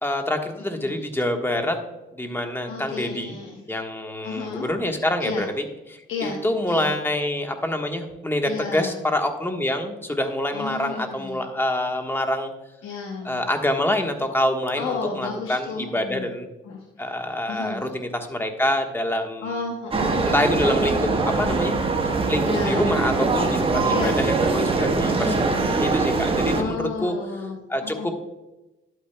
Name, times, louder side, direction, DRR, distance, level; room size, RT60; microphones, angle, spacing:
voice 1, 0.0-1.8 2.1-3.3 3.7-12.5 13.2-16.5 17.0-19.6 20.2-21.7 22.3-27.1 27.7-28.1, left 1 dB, 10° left, 4 dB, 1.3 m, -26 dB
voice 2, 2.6-3.6 4.2-4.7 5.2-5.4 6.1-6.4 6.7-6.9 8.4-8.9 10.5-11.4 12.8-13.4 14.8-16.3 16.7-16.8 17.5-17.8 19.4-20.3 22.4-22.8 23.9-24.2 25.1-25.4 26.5-27.6 27.8-28.1, left 4 dB, 80° left, 0 dB, 1.1 m, -32 dB
sound 1, 19.9-26.6, right 3 dB, 25° right, 1.2 m, -22 dB
11.5 x 8.9 x 2.2 m, 1.0 s
cardioid pair, 90°, 20 cm